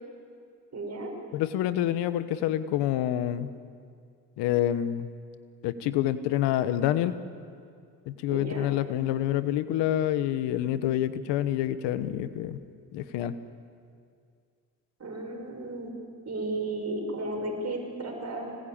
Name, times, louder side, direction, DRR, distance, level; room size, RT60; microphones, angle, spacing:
voice 1, 0.7-1.1 8.3-8.7 15.0-15.9 16.3-18.6, right 2 dB, 40° right, 2 dB, 5.9 m, -34 dB
voice 2, 1.3-3.5 4.4-5.1 5.6-7.1 8.1-12.6 12.9-13.4, left 12 dB, 85° left, 13 dB, 1.2 m, -27 dB
25.5 x 19.0 x 8.7 m, 2.3 s
supercardioid pair, 60°, 41 cm